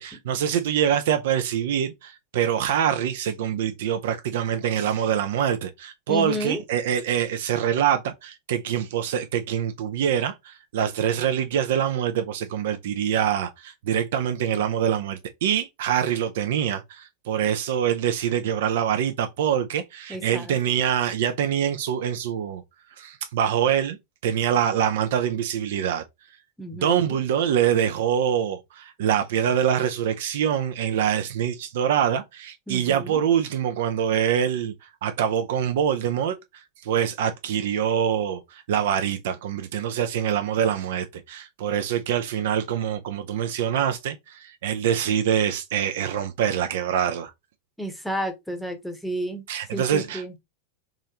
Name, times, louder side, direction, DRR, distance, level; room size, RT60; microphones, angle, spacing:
voice 1, 0.0-22.6 23.0-24.0 24.2-26.0 26.7-34.7 35.0-47.3 49.5-50.4, right 9 dB, 55° right, 0.5 m, -25 dB
voice 2, 6.1-6.6 20.1-20.5 26.6-27.2 32.7-33.2 47.8-49.4 49.7-50.3, equal, ahead, 0.9 m, -31 dB
3.6 x 3.1 x 2.8 m
figure-of-eight pair, 90°, 0 cm